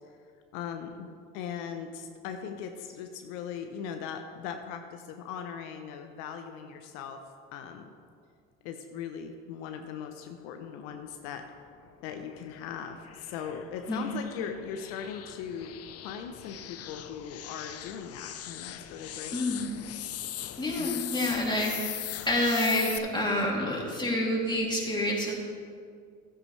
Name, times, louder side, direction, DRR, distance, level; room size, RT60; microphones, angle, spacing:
voice 1, 0.5-7.2 7.5-7.9 8.6-11.5 12.0-15.7 16.0-19.4 20.8-21.0, left 7 dB, 80° left, 6 dB, 0.8 m, -39 dB
sound 1, 11.4-23.0, left 11 dB, 45° left, 0.6 m, -41 dB
voice 2, 19.3-19.7 20.6-25.3, left 1 dB, 15° left, -3 dB, 2.7 m, -28 dB
12.5 x 9.2 x 3.2 m, 2.2 s
supercardioid pair, 75°, 34 cm